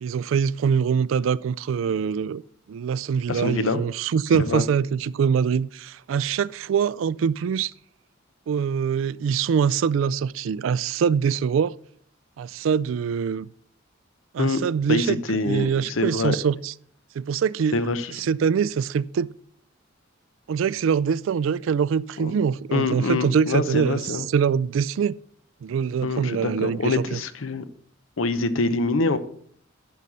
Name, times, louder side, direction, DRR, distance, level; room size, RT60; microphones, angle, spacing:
voice 1, 0.0-2.4 2.7-7.7 8.5-11.7 12.4-13.5 14.3-16.7 17.2-17.8 18.1-19.3 20.5-24.0 24.3-25.2 25.6-27.2, right 7 dB, 75° right, 0.3 m, -24 dB
voice 2, 3.3-3.8 4.3-4.6 14.4-14.6 14.9-16.4 17.7-18.1 22.2-22.3 22.7-24.3 26.0-27.6 28.2-29.2, left 3 dB, 85° left, 0.8 m, -25 dB
11.0 x 5.5 x 6.2 m
head